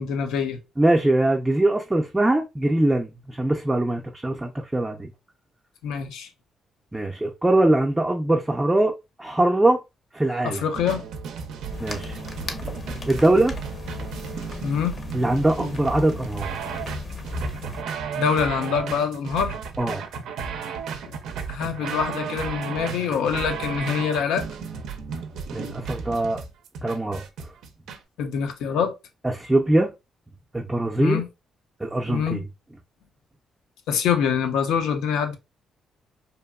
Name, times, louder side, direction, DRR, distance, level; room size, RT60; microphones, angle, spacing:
voice 1, 0.0-0.6 5.8-6.3 10.4-11.0 14.6-14.9 18.2-19.6 21.1-21.2 21.5-24.5 28.2-29.0 31.0-31.3 32.1-32.4 33.9-35.4, left 7 dB, 85° left, 0.5 m, -25 dB
voice 2, 0.8-5.1 6.9-8.9 9.2-9.8 10.1-10.6 11.8-12.2 13.1-13.6 15.1-16.6 19.8-20.0 25.5-26.4 26.8-27.2 29.3-29.9 30.5-31.2 31.8-32.4, right 1 dB, 10° right, 0.4 m, -22 dB
sound 1, 10.7-28.0, right 6 dB, 80° right, 0.4 m, -34 dB
sound 2, 11.7-17.8, left 4 dB, 40° left, 0.6 m, -36 dB
2.8 x 2.2 x 2.2 m
cardioid pair, 90°, 0 cm